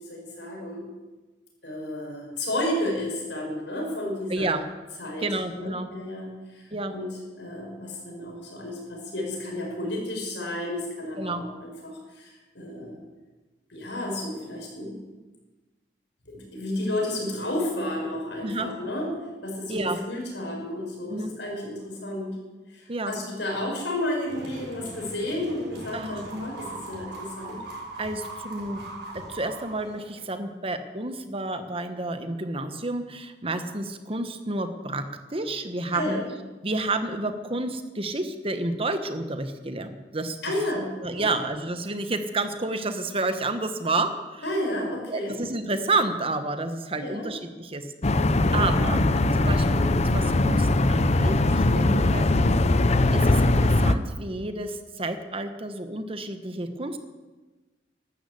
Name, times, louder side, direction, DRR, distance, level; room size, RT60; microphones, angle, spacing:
voice 1, 0.1-0.8 1.6-4.5 5.0-5.2 5.5-13.0 13.7-15.0 16.3-19.1 19.4-22.4 22.7-27.6 35.9-36.2 40.4-40.9 41.1-41.3 44.4-45.3 46.9-47.3 48.5-48.7, left 1 dB, 85° left, -1 dB, 6.2 m, -32 dB
voice 2, 4.3-4.6 5.2-5.9 6.7-6.9 11.2-11.4 18.4-18.7 19.7-20.0 21.1-21.3 22.9-23.1 25.9-26.5 28.0-28.8 29.1-36.2 36.6-40.4 41.0-44.4 45.1-48.1 48.5-52.3 53.1-57.0, right 2 dB, 35° right, 8 dB, 1.3 m, -30 dB
sound 1, 24.3-30.3, right 2 dB, 70° right, 6.9 m, -40 dB
sound 2, 48.0-53.9, left 2 dB, 40° left, 0.7 m, -21 dB
13.0 x 12.5 x 8.4 m, 1.2 s
head